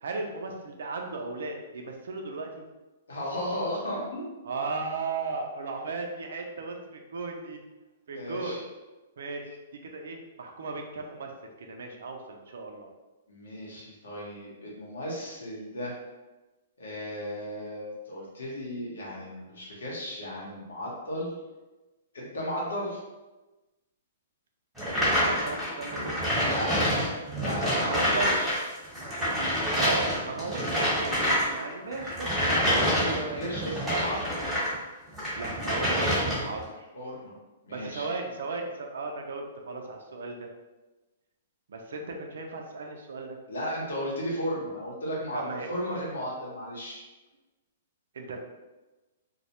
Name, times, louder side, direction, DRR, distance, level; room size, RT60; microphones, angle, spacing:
voice 1, 0.0-2.6 4.4-7.6 8.1-8.6 9.2-9.6 9.8-11.3 11.6-12.9 24.9-26.9 27.8-28.4 29.8-30.9 31.5-33.5 35.4-36.9 37.7-40.5 41.7-43.4 45.3-45.7 48.1-48.4, right 3 dB, 75° right, 2 dB, 0.4 m, -36 dB
voice 2, 3.1-4.2 8.1-8.6 13.3-15.9 16.8-21.3 22.1-23.0 26.4-26.9 27.3-28.6 32.5-34.4 36.9-37.3 37.6-38.1 43.5-45.4 45.7-47.0, equal, 85° left, -4 dB, 1.0 m, -35 dB
sound 1, 24.8-34.7 35.1-36.6, equal, 5° right, 1.1 m, -27 dB
2.2 x 2.1 x 2.8 m, 1.1 s
hypercardioid pair, 135°, 0 cm